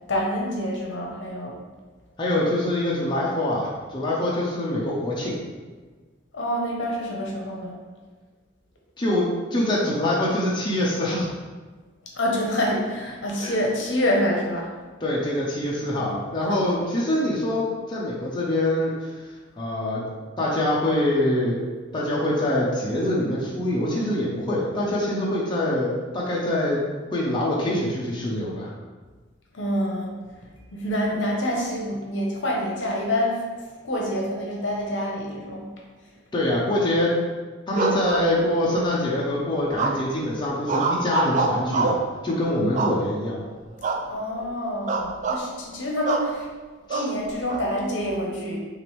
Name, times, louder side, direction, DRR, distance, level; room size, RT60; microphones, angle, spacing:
voice 1, 0.1-1.6 6.3-7.8 12.1-14.7 15.9-16.2 16.4-16.8 29.5-30.1 30.7-33.4 33.8-35.7 44.1-46.5 46.9-48.6, equal, 60° left, -2 dB, 1.0 m, -27 dB
voice 2, 2.2-5.3 9.0-11.3 13.4-13.5 15.0-19.1 19.6-20.0 20.4-21.7 21.9-26.8 27.1-28.7 36.3-37.1 37.7-43.4 46.9-47.0, left 1 dB, 25° left, -6 dB, 0.7 m, -24 dB
sound 1, 37.7-38.8 39.8-40.2 40.7-42.1 42.8-43.3 43.8-44.1 44.4-44.5 44.9-45.4 46.1-46.3 46.9-47.6, right 3 dB, 40° right, 0.4 m, -25 dB
6.2 x 2.6 x 3.3 m, 1.4 s
head